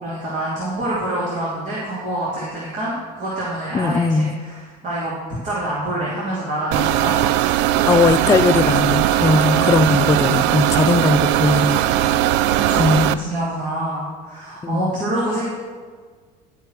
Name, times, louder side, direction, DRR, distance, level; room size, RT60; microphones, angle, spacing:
voice 1, 0.0-5.1 5.4-7.2 9.2-10.1 12.5-15.4, right 1 dB, 45° right, -8 dB, 2.9 m, -26 dB
voice 2, 3.7-4.3 7.9-11.8 12.8-13.1 14.6-14.9, left 4 dB, 15° left, 11 dB, 0.3 m, -19 dB
sound 1, 6.7-13.1, right 13 dB, 70° right, 0.4 m, -18 dB
11.5 x 4.8 x 6.4 m, 1.5 s
supercardioid pair, 100°, 19 cm